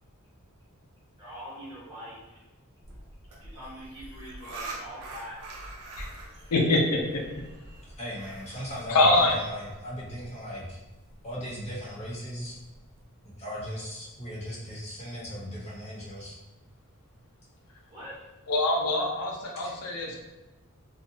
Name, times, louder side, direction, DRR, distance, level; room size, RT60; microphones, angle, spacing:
voice 1, 1.2-2.4 3.3-5.4 17.9-18.1, equal, 20° right, -8 dB, 1.1 m, -43 dB
sound 1, 2.8-13.0, right 2 dB, 85° right, 0.5 m, -45 dB
voice 2, 6.5-7.2 8.9-9.4 18.5-20.2, left 2 dB, 85° left, 0 dB, 0.5 m, -24 dB
voice 3, 8.0-10.8 11.2-12.5 13.2-16.3 19.6-19.7, equal, 30° left, -5 dB, 0.8 m, -38 dB
2.7 x 2.0 x 2.6 m, 1.1 s
head